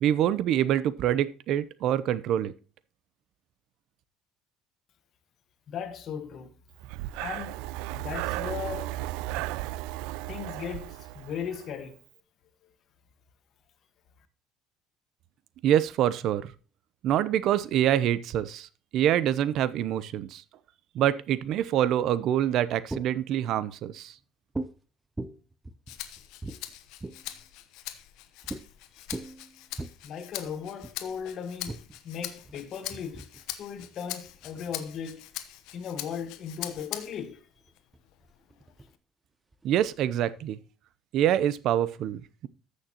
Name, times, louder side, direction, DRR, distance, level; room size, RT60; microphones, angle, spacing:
voice 1, 0.0-2.5 15.6-16.5 17.0-20.4 20.9-24.1 39.6-40.6 41.1-42.5, right 11 dB, 65° right, 0.7 m, -26 dB
voice 2, 5.7-6.5 7.2-7.6 7.9-9.0 10.3-12.0 30.0-35.2 35.7-37.5, left 7 dB, 50° left, 1.5 m, -37 dB
Breathing, 6.8-11.7, right 17 dB, 90° right, 0.3 m, -35 dB
sound 1, 22.7-23.4 24.5-24.8 25.2-27.3 28.4-28.6 29.0-29.9 30.8-31.0 31.6-35.0 35.7-36.3 36.7-36.8 37.1-38.9 39.5-40.3, right 2 dB, 15° right, 0.7 m, -40 dB
Rattle (instrument), 25.9-37.3 37.8-38.9, left 13 dB, 80° left, 1.0 m, -42 dB
14.5 x 6.5 x 2.9 m
cardioid pair, 120°, 0 cm